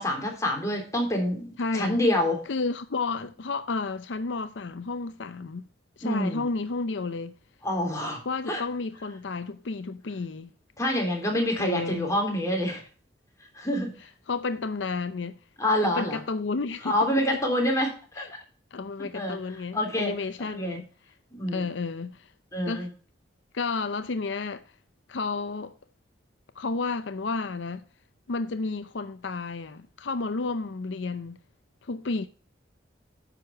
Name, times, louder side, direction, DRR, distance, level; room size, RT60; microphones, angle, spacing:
voice 1, 0.0-2.4 6.0-6.4 7.6-8.2 8.5-8.6 10.8-12.8 13.5-13.9 15.6-16.2 16.8-18.4 19.1-19.4 19.7-20.1 20.4-20.8 21.3-21.6 22.5-22.9, left 1 dB, 15° left, 3.3 m, -27 dB
voice 2, 1.6-2.0 2.5-5.7 6.0-7.3 8.2-10.5 11.6-12.1 14.3-15.4 15.8-17.0 18.2-18.3 18.7-20.8 21.5-22.3 22.7-22.9 23.5-24.7 25.1-25.7 26.6-27.8 28.3-31.4 31.8-32.3, left 3 dB, 80° left, 0.6 m, -31 dB
10.0 x 6.7 x 4.5 m
head